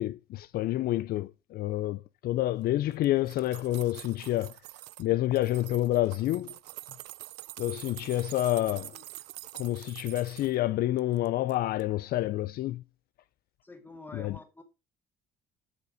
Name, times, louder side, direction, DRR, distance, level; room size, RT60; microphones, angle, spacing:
voice 1, 0.0-4.5 5.0-6.5 7.6-9.0 9.5-12.8 14.1-14.4, left 15 dB, 65° left, 0.4 m, -28 dB
sound 1, 2.9-5.1 5.4-10.6 11.0-11.5 11.8-11.9, right 20 dB, 90° right, 0.4 m, -45 dB
voice 2, 13.6-14.6, left 2 dB, 10° left, 2.0 m, -47 dB
8.2 x 6.8 x 5.1 m
cardioid pair, 110°, 17 cm